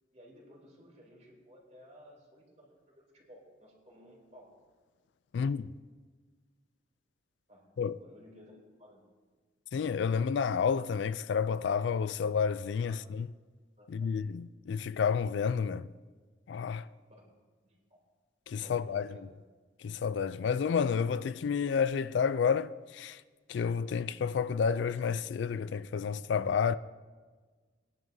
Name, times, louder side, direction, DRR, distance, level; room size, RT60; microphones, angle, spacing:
voice 1, 0.1-4.5 7.5-9.0 12.8-13.0 13.8-14.1 17.1-17.2 17.6-18.0 18.6-19.2, equal, 35° right, 3.1 m, -56 dB
voice 2, 5.3-5.7 7.8-8.0 9.7-13.3 13.9-15.9 16.5-16.8 18.5-19.1 19.8-23.2 23.5-26.8, left 6 dB, 70° left, 0.3 m, -30 dB
19.5 x 10.5 x 2.7 m
head